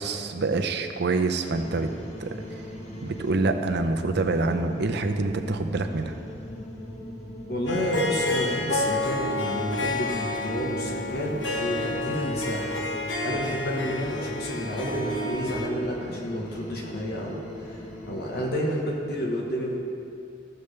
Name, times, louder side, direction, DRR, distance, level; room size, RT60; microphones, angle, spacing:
voice 1, 0.0-1.9 2.2-2.4 3.0-6.1, right 3 dB, 65° right, 7 dB, 0.6 m, -26 dB
sound 1, 1.5-18.5, equal, 35° left, 1.5 m, -40 dB
voice 2, 7.5-12.8 13.2-17.8 18.0-19.8, equal, 60° left, -2 dB, 1.2 m, -30 dB
Harp, 7.7-15.7, left 2 dB, 85° left, 1.0 m, -30 dB
14.5 x 6.9 x 3.3 m, 2.5 s
head